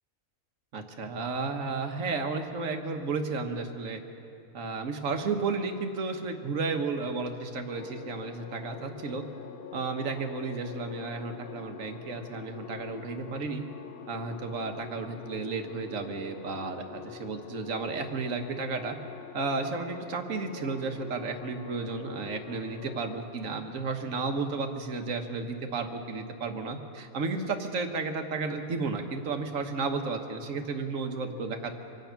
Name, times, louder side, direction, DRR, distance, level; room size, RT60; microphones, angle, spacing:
voice 1, 0.7-4.0 4.5-9.2 9.7-13.6 14.1-18.9 19.3-31.7, right 4 dB, 65° right, 5 dB, 1.5 m, -33 dB
sound 1, 7.7-23.2, left 9 dB, 55° left, 0.7 m, -45 dB
25.0 x 9.3 x 5.8 m, 2.6 s
omnidirectional pair, 1.5 m